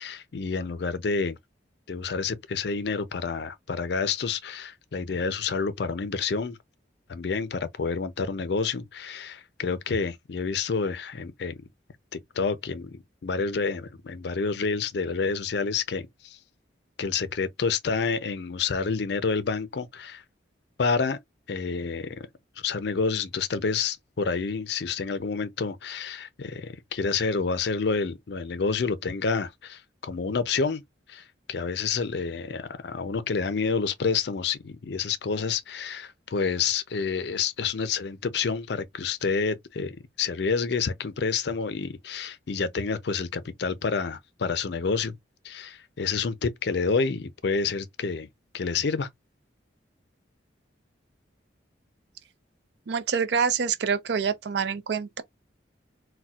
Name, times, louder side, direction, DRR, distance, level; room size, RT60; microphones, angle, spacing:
voice 1, 0.0-1.4 1.9-6.6 7.1-11.6 12.1-16.4 17.0-20.2 20.8-21.2 21.5-22.3 22.6-30.8 31.1-45.2 45.4-48.3 48.5-49.1, left 5 dB, 60° left, 0.4 m, -29 dB
voice 2, 52.9-55.2, right 6 dB, 65° right, 0.4 m, -26 dB
4.1 x 2.1 x 2.3 m
head